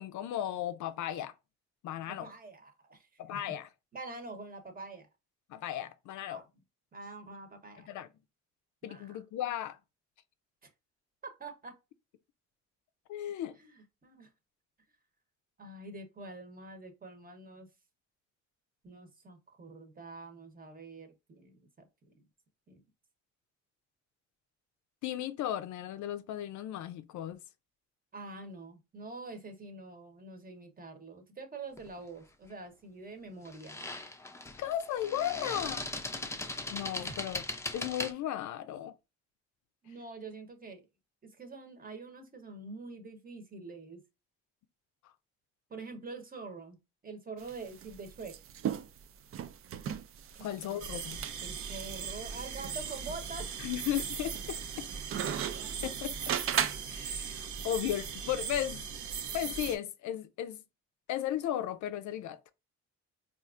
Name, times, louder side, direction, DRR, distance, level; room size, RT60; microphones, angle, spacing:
voice 1, 0.0-1.3 1.8-2.3 3.2-3.7 5.5-6.4 7.9-8.1 8.8-9.8 13.1-13.5 25.0-27.4 34.6-35.9 36.7-37.4 37.7-38.9 50.4-51.2 53.6-54.9 55.8-56.1 56.9-58.8 59.3-60.6 61.1-62.4, left 11 dB, 75° left, 0.5 m, -35 dB
voice 2, 2.1-3.5 3.9-5.1 6.3-6.4 6.9-7.9 8.8-9.2 10.6-10.7 11.2-11.8 13.6-14.3 15.6-17.7 18.8-21.9 22.7-22.8 28.1-33.9 37.0-37.1 39.8-40.9 41.2-44.0 45.7-48.4 50.3-50.8 51.4-53.5, right 3 dB, 30° right, 0.9 m, -46 dB
sound 1, 31.8-32.0 33.4-38.1, left 2 dB, 10° left, 0.4 m, -39 dB
sound 2, 47.4-57.0, right 9 dB, 45° right, 0.4 m, -38 dB
sound 3, 50.8-59.7, right 6 dB, 75° right, 0.7 m, -39 dB
4.1 x 2.5 x 2.4 m
cardioid pair, 90°, 30 cm